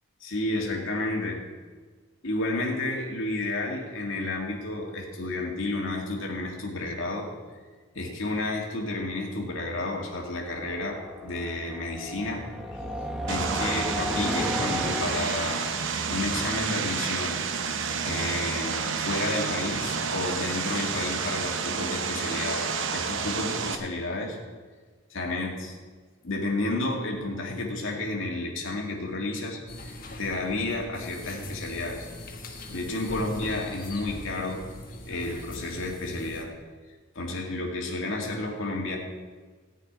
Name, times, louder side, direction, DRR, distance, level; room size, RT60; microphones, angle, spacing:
voice 1, 0.2-1.4 2.2-7.3 7.9-12.5 13.3-15.6 16.1-17.4 18.0-24.4 25.1-25.8 26.2-29.9 30.2-32.1 32.7-34.6 35.1-36.5 37.1-39.0, left 2 dB, 65° left, 0 dB, 2.0 m, -31 dB
sound 1, 10.3-15.8, equal, 5° right, 0.8 m, -34 dB
Vehicle, 13.3-23.8, right 5 dB, 65° right, 0.9 m, -30 dB
sound 2, 29.7-36.4, left 1 dB, 40° left, 1.5 m, -41 dB
14.5 x 5.9 x 9.4 m, 1.5 s
head